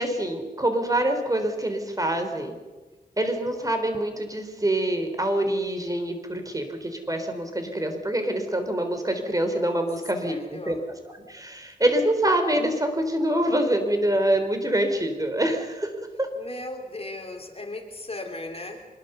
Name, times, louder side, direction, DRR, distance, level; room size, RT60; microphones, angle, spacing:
voice 1, 0.0-2.6 3.2-10.8 11.3-15.9 16.2-16.3, right 1 dB, 25° right, 6 dB, 3.8 m, -25 dB
voice 2, 10.2-10.8 16.4-18.9, left 2 dB, 40° left, 3 dB, 3.4 m, -37 dB
24.5 x 21.5 x 6.9 m, 1.3 s
wide cardioid pair, 85°, 15 cm